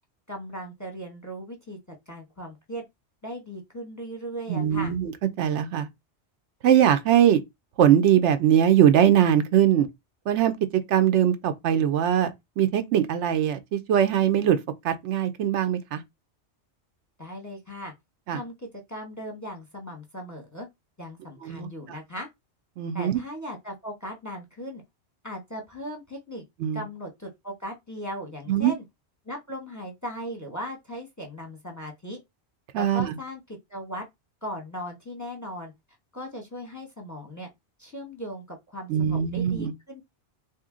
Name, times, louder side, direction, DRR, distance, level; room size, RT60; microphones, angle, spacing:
voice 1, 0.3-1.8 2.1-2.8 3.2-5.0 17.2-17.9 18.3-20.7 21.0-22.3 22.9-24.8 25.2-26.4 26.7-28.8 29.2-32.2 32.8-34.0 34.4-35.7 36.1-37.5 37.8-40.0, equal, 15° left, 0.8 m, -38 dB
voice 2, 4.5-5.1 5.4-5.9 6.6-7.4 7.8-9.9 10.3-10.5 10.9-14.6 14.8-16.0 18.3-18.4 21.4-22.0 22.8-23.2 26.6-26.8 28.5-28.7 32.7-33.2 38.9-39.7, right 10 dB, 80° right, 0.9 m, -21 dB
2.9 x 2.6 x 3.6 m
omnidirectional pair, 1.2 m